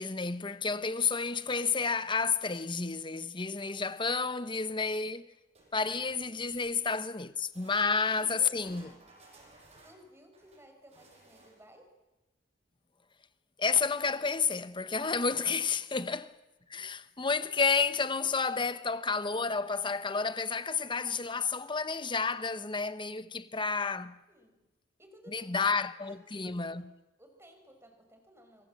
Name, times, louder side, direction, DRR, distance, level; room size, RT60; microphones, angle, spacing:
voice 1, 0.0-5.3 5.7-8.9 13.6-16.3 16.7-24.2 25.3-26.9, left 5 dB, 25° left, 1.1 m, -31 dB
sound 1, 5.5-6.9 7.5-11.8 15.1-15.2 15.5-15.6 16.3-16.4, right 2 dB, 35° right, 7.1 m, -59 dB
voice 2, 6.2-6.8 7.8-9.1 9.8-12.0 15.9-16.0 24.3-24.6 25.0-25.6 26.0-26.8 27.2-28.7, right 1 dB, 15° right, 4.9 m, -57 dB
27.0 x 23.0 x 7.8 m
head